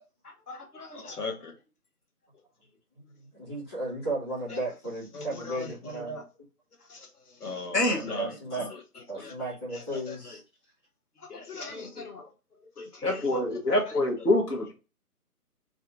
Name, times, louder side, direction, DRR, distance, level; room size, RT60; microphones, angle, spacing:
voice 1, 0.2-1.5 4.5-4.6 5.1-6.2 6.8-9.3 9.7-10.4 11.2-12.3 12.8-13.2 13.8-14.3, left 3 dB, 70° left, 0.9 m, -40 dB
voice 2, 2.9-6.2 7.9-8.7 9.1-10.4, right 2 dB, 15° left, 1.0 m, -35 dB
voice 3, 13.0-14.7, left 1 dB, 85° left, 1.2 m, -25 dB
2.7 x 2.4 x 3.7 m
figure-of-eight pair, 155°, 47 cm